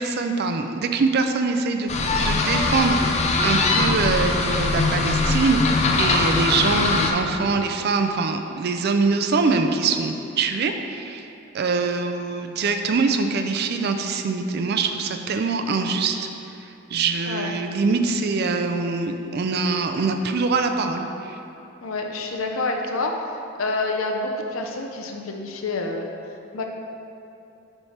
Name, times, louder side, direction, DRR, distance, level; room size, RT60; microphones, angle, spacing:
voice 1, 0.0-11.3 11.5-16.3 16.9-21.4, right 4 dB, 50° right, 6 dB, 0.4 m, -23 dB
sound 1, 1.9-7.1, left 3 dB, 35° left, 0.5 m, -21 dB
voice 2, 21.8-23.2 23.6-26.1 26.5-26.6, left 2 dB, 85° left, 2 dB, 0.7 m, -27 dB
7.1 x 3.3 x 5.8 m, 2.8 s
head